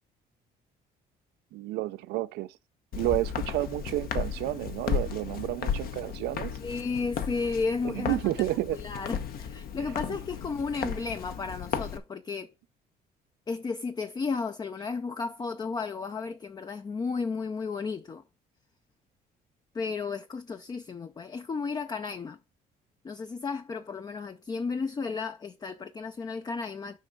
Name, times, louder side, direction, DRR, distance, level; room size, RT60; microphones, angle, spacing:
voice 1, 1.5-2.6 2.9-6.5 7.8-8.8 10.1-10.2 10.8-10.9, right 16 dB, 85° right, 0.5 m, -31 dB
Walk footsteps, 2.9-12.0, left 7 dB, 60° left, 1.0 m, -34 dB
voice 2, 6.6-8.2 8.7-12.5 13.5-18.2 19.7-22.4 23.0-27.0, left 4 dB, 25° left, 0.5 m, -33 dB
6.5 x 5.2 x 5.3 m
cardioid pair, 110°, 17 cm